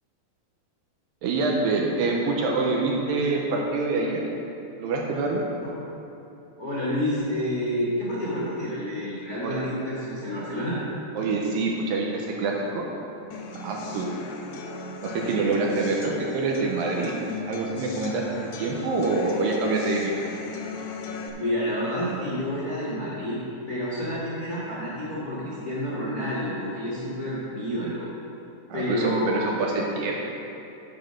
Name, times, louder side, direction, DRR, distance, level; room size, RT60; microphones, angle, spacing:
voice 1, 1.2-4.2 4.8-5.4 9.4-9.6 11.2-12.9 13.6-14.1 15.0-17.1 17.5-18.2 18.6-20.1 28.7-30.1, right 3 dB, 75° right, -1 dB, 2.3 m, -26 dB
voice 2, 6.6-10.8 21.3-23.4 23.7-28.1 28.7-29.8, equal, 70° left, -8 dB, 0.9 m, -29 dB
sound 1, 13.3-21.3, left 3 dB, 85° left, 2.7 m, -36 dB
8.8 x 5.9 x 6.2 m, 2.9 s
omnidirectional pair, 4.6 m